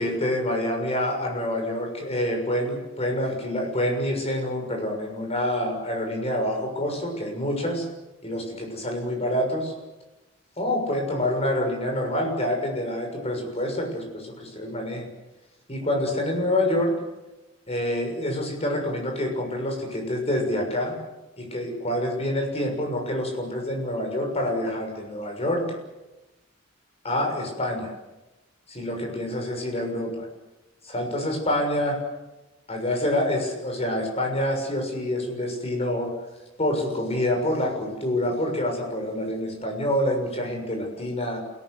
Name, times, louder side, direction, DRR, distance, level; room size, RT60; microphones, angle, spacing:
voice 1, 0.0-7.9 8.2-9.7 10.6-15.1 15.7-17.0 17.7-21.0 21.4-25.7 27.0-27.9 28.7-30.3 30.8-32.0 32.7-36.1 36.6-41.4, left 1 dB, 30° left, 3 dB, 6.6 m, -27 dB
29.0 x 18.0 x 8.0 m, 1.0 s
head